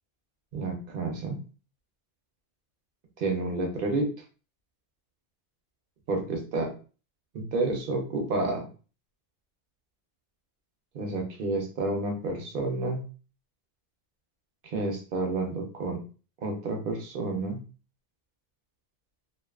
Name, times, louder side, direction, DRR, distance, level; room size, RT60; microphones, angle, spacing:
voice 1, 0.5-1.4 3.2-4.1 6.1-6.7 7.3-8.7 10.9-13.0 14.6-16.0 16.4-17.6, right 2 dB, 60° right, 2 dB, 0.8 m, -30 dB
2.4 x 2.3 x 2.3 m, 0.36 s
omnidirectional pair, 1.0 m